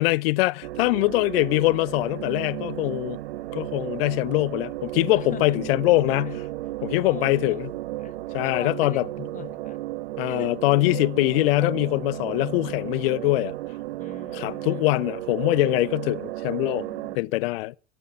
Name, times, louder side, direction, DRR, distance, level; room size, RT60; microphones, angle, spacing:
voice 1, 0.0-3.2 3.5-6.4 6.8-7.7 8.3-9.0 9.4-9.5 10.2-13.6 14.3-16.9 17.1-17.8, left 21 dB, 60° left, 0.5 m, -23 dB
sound 1, 0.6-17.2, right 16 dB, 70° right, 0.6 m, -34 dB
voice 2, 5.1-5.8 6.2-6.3 7.0-7.6 8.0-9.8 10.3-10.7 14.0-15.0 16.7-17.6, left 9 dB, 25° left, 0.9 m, -43 dB
12.5 x 7.5 x 8.2 m
hypercardioid pair, 80°, 33 cm